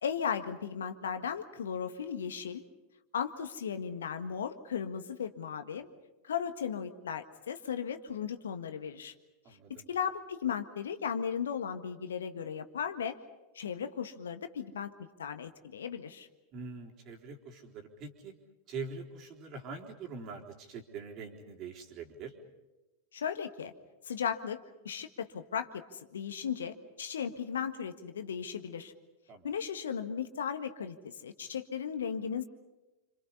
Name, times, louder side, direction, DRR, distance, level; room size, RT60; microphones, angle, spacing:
voice 1, 0.0-2.6 3.1-5.9 6.2-9.1 9.9-13.2 13.5-14.9 15.2-16.3 23.1-23.7 24.0-28.9 29.4-32.4, left 7 dB, 65° left, 9 dB, 1.6 m, -36 dB
voice 2, 9.4-9.9 16.5-18.3 18.7-22.3 29.3-29.5, right 4 dB, 35° right, 2 dB, 3.9 m, -43 dB
28.5 x 27.0 x 5.6 m, 1.1 s
figure-of-eight pair, 90°, 0 cm